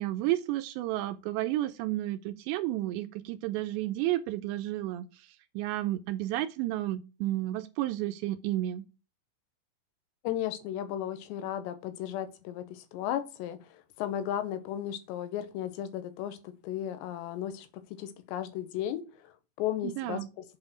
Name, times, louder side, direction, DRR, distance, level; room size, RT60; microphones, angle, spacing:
voice 1, 0.0-8.8 19.8-20.3, right 15 dB, 85° right, 2.5 m, -32 dB
voice 2, 10.2-17.7 18.0-19.3 19.6-20.2, left 11 dB, 80° left, 2.8 m, -35 dB
7.9 x 4.2 x 6.0 m
omnidirectional pair, 5.5 m